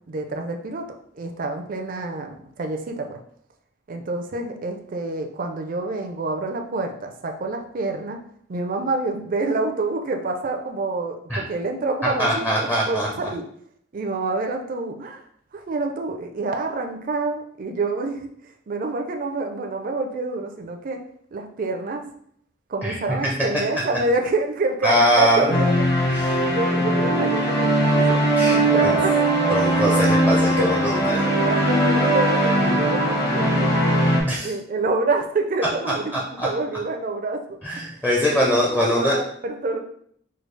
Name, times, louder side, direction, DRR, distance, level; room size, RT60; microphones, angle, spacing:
voice 1, 0.1-0.9 1.1-3.2 3.9-8.2 8.5-13.4 13.9-15.2 15.5-18.3 18.7-21.0 21.3-22.0 22.7-25.8 26.4-29.8 30.6-30.8 31.1-33.8 34.4-36.1 36.4-37.6 38.2-38.4 38.8-39.8, right 3 dB, 45° right, 4 dB, 0.4 m, -27 dB
voice 2, 12.2-13.1 22.8-23.0 24.8-25.5 26.1-26.4 28.4-28.9 29.5-31.3 34.3-34.5 36.4-36.5 37.6-39.2, equal, 10° left, -3 dB, 0.5 m, -22 dB
sound 1, 25.5-34.2, right 1 dB, 50° left, 1.1 m, -20 dB
4.7 x 2.3 x 3.2 m, 0.65 s
head